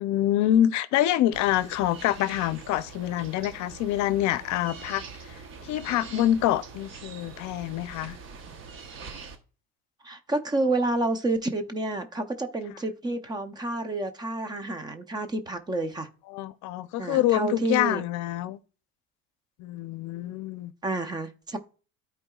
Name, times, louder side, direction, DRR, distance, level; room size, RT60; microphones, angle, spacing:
voice 1, 0.0-5.0 5.7-8.2 16.3-18.6 19.6-20.7, left 12 dB, 55° left, 0.6 m, -26 dB
sound 1, 1.3-9.4, right 5 dB, 35° right, 1.0 m, -44 dB
voice 2, 10.0-16.1 17.0-18.0 20.8-21.6, right 2 dB, 10° right, 0.6 m, -29 dB
13.0 x 4.7 x 2.3 m
cardioid pair, 175°, 35 cm